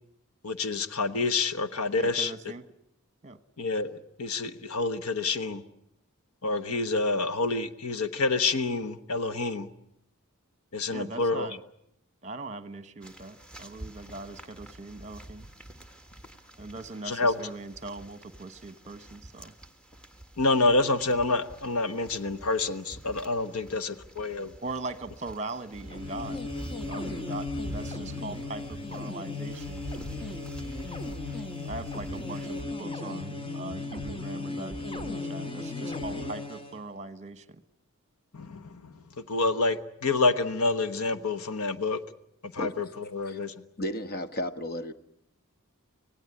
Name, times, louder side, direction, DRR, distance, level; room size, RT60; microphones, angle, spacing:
voice 1, 0.4-2.3 3.6-5.6 6.4-9.7 10.7-11.5 17.0-17.3 20.4-24.5 38.3-38.9 39.3-42.0 42.4-43.5, left 3 dB, 75° left, 11 dB, 1.2 m, -28 dB
voice 2, 2.0-2.6 3.2-3.4 10.9-11.6 12.2-15.5 16.6-19.5 24.6-26.4 26.9-29.8 31.6-37.6, right 2 dB, 30° right, 13 dB, 1.2 m, -40 dB
sound 1, 13.0-32.6, right 1 dB, 5° left, 1.6 m, -47 dB
sound 2, 25.8-36.8, left 2 dB, 25° left, 1.3 m, -36 dB
voice 3, 43.8-44.9, left 1 dB, 45° left, 10 dB, 1.3 m, -33 dB
25.5 x 17.5 x 9.8 m, 0.79 s
head